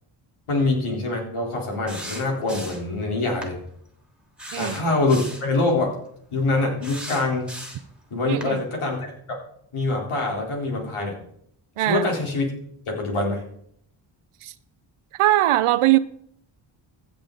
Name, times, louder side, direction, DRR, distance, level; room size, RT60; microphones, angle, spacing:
voice 1, 0.5-3.6 4.6-5.9 6.3-7.5 8.1-9.4 9.7-11.2 11.9-12.5 12.9-13.4, left 2 dB, 75° left, 3.8 m, -24 dB
sound 1, 1.9-2.9 3.4-3.6 4.4-5.5 6.8-7.9 8.4-8.5, right 1 dB, ahead, 2.8 m, -37 dB
voice 2, 8.3-8.6 11.8-12.1 14.4-14.5 15.2-16.0, right 15 dB, 80° right, 0.7 m, -20 dB
15.5 x 6.9 x 3.9 m
cardioid pair, 65°, 50 cm